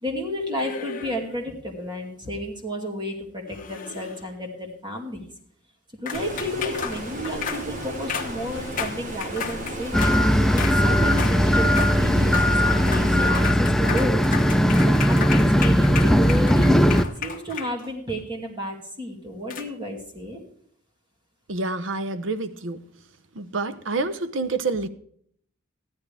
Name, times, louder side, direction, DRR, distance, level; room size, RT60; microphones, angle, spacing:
voice 1, 0.0-5.3 6.0-10.0 10.5-14.3 14.9-20.4, equal, 25° right, 2.4 m, -32 dB
sound 1, 0.6-1.4 3.5-4.4 6.1-10.2 10.6-10.8 11.1-11.4 11.6-11.9 12.2-12.5 12.8-13.1 13.3-18.1 19.5-19.6, left 6 dB, 45° left, 1.2 m, -33 dB
Stream, 6.1-13.3, right 1 dB, 40° right, 2.0 m, -34 dB
sound 2, 9.9-17.1, equal, ahead, 0.4 m, -19 dB
voice 2, 21.5-22.8 23.3-24.9, right 3 dB, 70° right, 0.8 m, -28 dB
14.0 x 11.0 x 3.4 m
head